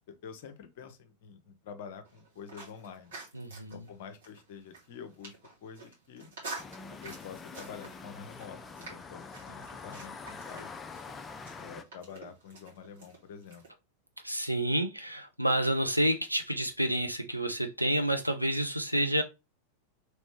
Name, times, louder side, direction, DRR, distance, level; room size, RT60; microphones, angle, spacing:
voice 1, 0.1-3.1 3.7-6.3 7.0-10.7 11.6-13.6, left 7 dB, 50° left, 0.7 m, -47 dB
sound 1, 2.0-13.7, right 3 dB, 60° right, 1.8 m, -49 dB
voice 2, 3.3-3.9 14.2-19.2, right 1 dB, 90° right, 0.5 m, -29 dB
sound 2, 6.6-11.8, left 4 dB, 15° left, 0.4 m, -45 dB
3.2 x 3.1 x 3.2 m
figure-of-eight pair, 90°, 0 cm